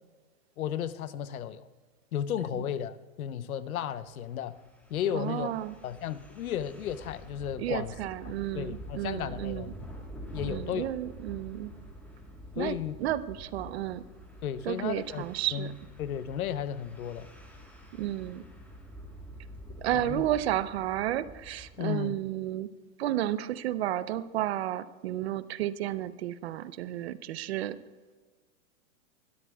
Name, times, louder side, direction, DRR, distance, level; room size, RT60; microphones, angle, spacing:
voice 1, 0.6-1.7 2.1-4.6 4.9-5.5 5.8-8.0 8.2-9.7 10.3-10.9 12.6-12.9 14.4-15.2 15.5-15.7 16.0-17.3 19.9-20.2 21.8-22.2, left 9 dB, 90° left, 14 dB, 0.9 m, -34 dB
sound 1, 4.1-21.8, equal, 5° left, 1.3 m, -47 dB
voice 2, 5.1-5.7 7.6-9.7 10.4-11.7 12.6-14.0 14.6-15.7 18.0-18.4 19.8-22.7 23.0-27.8, right 13 dB, 50° right, 15 dB, 0.6 m, -32 dB
22.0 x 13.0 x 2.3 m, 1.4 s
supercardioid pair, 155°, 41 cm